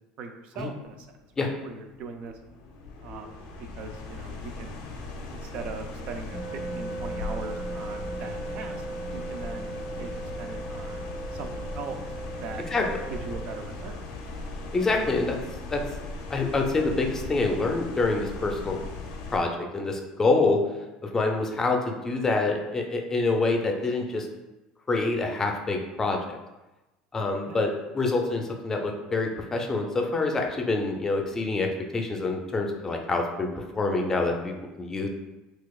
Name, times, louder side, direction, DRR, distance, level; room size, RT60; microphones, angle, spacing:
voice 1, 0.2-1.1 1.4-2.3 3.0-4.7 5.3-8.9 9.1-12.0 12.3-12.6 13.1-14.0 27.5-27.7, right 5 dB, 55° right, 5 dB, 0.3 m, -40 dB
sound 1, 0.8-19.4, left 2 dB, 85° left, 0.6 m, -38 dB
sound 2, 6.3-13.7, right 2 dB, 20° right, 1.1 m, -38 dB
voice 2, 14.7-15.4 15.7-15.8 16.3-18.8 19.3-20.6 21.1-24.3 24.9-26.4 27.1-35.1, left 3 dB, 20° left, 2 dB, 0.5 m, -26 dB
4.0 x 2.4 x 2.3 m, 1.0 s
supercardioid pair, 110°, 2 cm